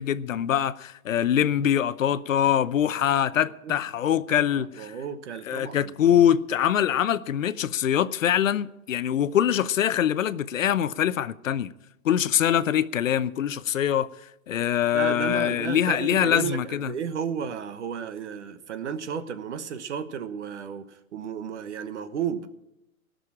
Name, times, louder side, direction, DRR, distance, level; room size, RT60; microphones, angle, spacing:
voice 1, 0.0-4.9 5.5-11.7 12.0-14.1 14.5-16.9, left 10 dB, 60° left, 0.8 m, -24 dB
voice 2, 4.3-6.2 14.9-22.5, right 7 dB, 50° right, 1.2 m, -33 dB
17.5 x 6.5 x 8.6 m
hypercardioid pair, 165°, 43 cm